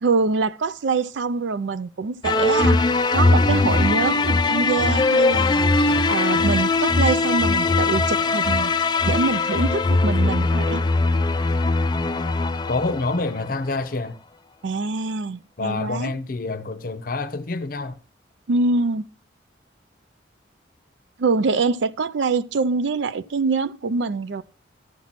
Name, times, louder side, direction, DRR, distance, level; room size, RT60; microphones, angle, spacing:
voice 1, 0.0-2.8 3.1-10.8 14.6-16.1 18.5-19.1 21.2-24.4, right 4 dB, 70° right, 0.4 m, -24 dB
sound 1, 2.2-13.6, left 3 dB, 25° left, 0.4 m, -20 dB
voice 2, 12.7-14.2 15.6-18.0, left 3 dB, 50° left, 0.7 m, -27 dB
13.5 x 5.9 x 4.1 m
head